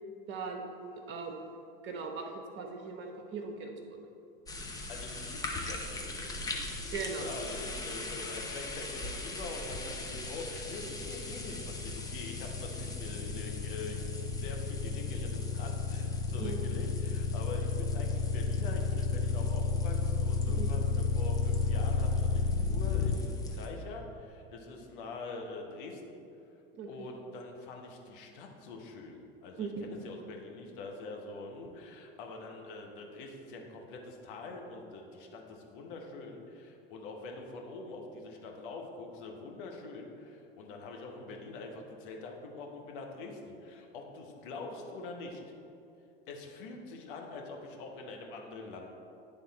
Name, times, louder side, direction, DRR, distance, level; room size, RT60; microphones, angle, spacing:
voice 1, 0.3-1.5 1.8-4.0 6.9-7.2 16.4-16.6 20.5-20.7 26.7-27.1 29.6-29.8, right 4 dB, 40° right, 3 dB, 1.0 m, -39 dB
sound 1, 4.5-23.7, left 2 dB, 10° left, 0.8 m, -41 dB
voice 2, 4.9-6.3 7.2-26.0 26.9-45.4 46.3-48.8, left 3 dB, 60° left, 1 dB, 1.1 m, -44 dB
sound 2, 9.9-23.2, left 5 dB, 45° left, 0.7 m, -31 dB
9.8 x 3.5 x 4.2 m, 2.7 s
hypercardioid pair, 85°, 29 cm